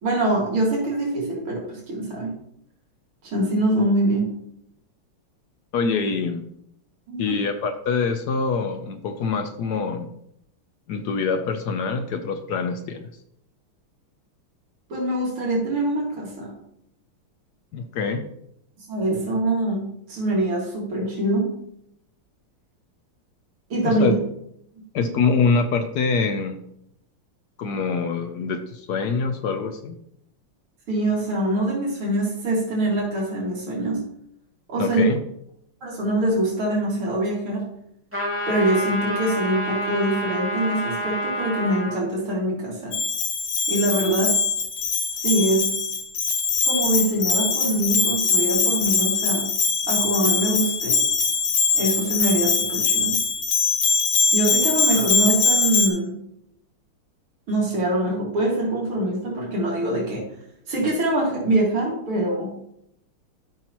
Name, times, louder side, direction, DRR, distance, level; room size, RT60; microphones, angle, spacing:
voice 1, 0.0-2.3 3.2-4.3 7.1-7.4 14.9-16.5 18.9-21.5 23.7-24.1 30.9-34.0 34.7-35.0 35.8-37.7 38.5-43.0 43.7-44.4 45.2-45.7 46.6-49.5 49.9-51.0 51.7-53.2 54.3-56.1 57.5-60.3 60.7-62.5, right 1 dB, 80° right, -4 dB, 3.0 m, -24 dB
voice 2, 5.7-6.4 7.2-10.1 10.9-13.1 17.7-18.2 23.8-24.1 24.9-26.6 27.6-29.9 34.8-35.2, left 5 dB, 75° left, 7 dB, 0.9 m, -24 dB
sound 1, 38.1-42.0, equal, 5° right, 1.9 m, -28 dB
Bell, 42.9-55.9, left 5 dB, 55° left, 1.6 m, -22 dB
13.0 x 5.6 x 3.0 m, 0.76 s
omnidirectional pair, 2.3 m